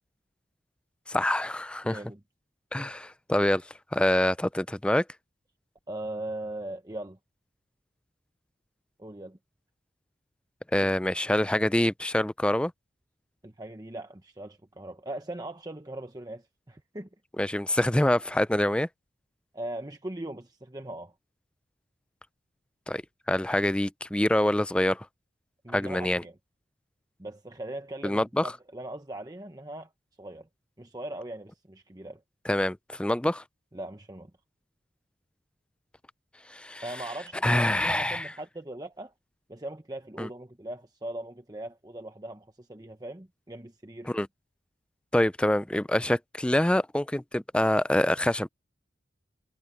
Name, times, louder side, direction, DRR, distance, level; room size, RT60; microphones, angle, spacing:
voice 1, 1.1-2.0 2.7-3.6 3.9-5.0 10.7-12.7 17.4-18.9 22.9-23.0 23.3-25.1 25.7-26.2 28.0-28.5 32.5-33.4 36.5-36.8 37.4-38.3 40.2-40.3 44.0-44.3 45.1-48.5, left 1 dB, 5° left, 0.4 m, -25 dB
voice 2, 1.8-2.2 5.9-7.2 9.0-9.4 13.4-17.1 19.5-21.1 25.6-26.3 27.2-29.9 30.2-30.5 30.8-32.2 33.7-34.3 36.8-39.1 39.5-44.1, right 1 dB, 20° right, 1.0 m, -40 dB
head